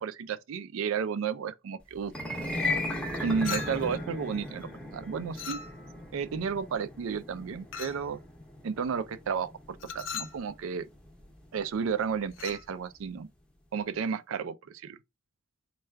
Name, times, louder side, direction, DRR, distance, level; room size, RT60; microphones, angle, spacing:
voice 1, 0.0-2.1 3.2-5.6 6.1-8.2 8.6-10.9 11.5-13.3 13.7-15.0, right 6 dB, 65° right, 0.4 m, -32 dB
sound 1, 2.0-12.4, left 2 dB, 5° left, 0.6 m, -37 dB
Chink clink, 3.4-4.0 5.3-6.0 7.7-8.1 9.8-10.4 12.3-12.7, left 7 dB, 60° left, 0.5 m, -39 dB
4.4 x 2.3 x 3.2 m
head